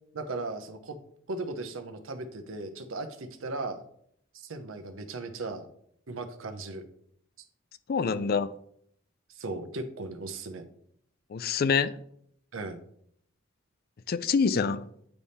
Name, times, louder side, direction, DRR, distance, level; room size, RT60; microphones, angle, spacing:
voice 1, 0.1-1.0 1.3-3.8 4.3-5.7 6.1-6.8 9.3-10.6 12.5-12.8, right 2 dB, 80° right, 7 dB, 0.8 m, -37 dB
voice 2, 7.9-8.5 11.3-12.0 14.1-14.8, left 5 dB, 50° left, 14 dB, 0.4 m, -26 dB
8.9 x 3.5 x 4.2 m, 0.68 s
head